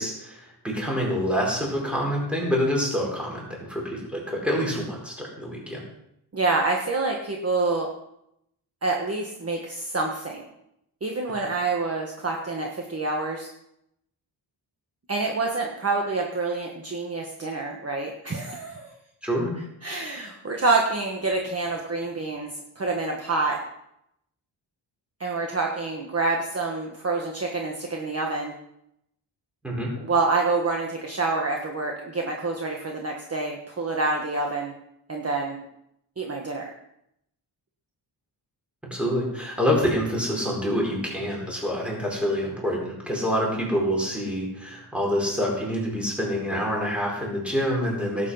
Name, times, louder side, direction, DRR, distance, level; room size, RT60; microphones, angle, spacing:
voice 1, 0.0-5.8 19.2-19.5 29.6-29.9 38.9-48.3, equal, ahead, -3 dB, 4.6 m, -26 dB
voice 2, 6.3-7.9 8.8-10.5 11.0-13.5 15.1-18.9 19.8-22.5 22.7-23.6 25.2-28.5 30.0-34.7 35.1-35.6 36.2-36.7, right 3 dB, 30° right, 1 dB, 1.4 m, -27 dB
17.5 x 8.3 x 5.7 m, 0.79 s
wide cardioid pair, 180°, 46 cm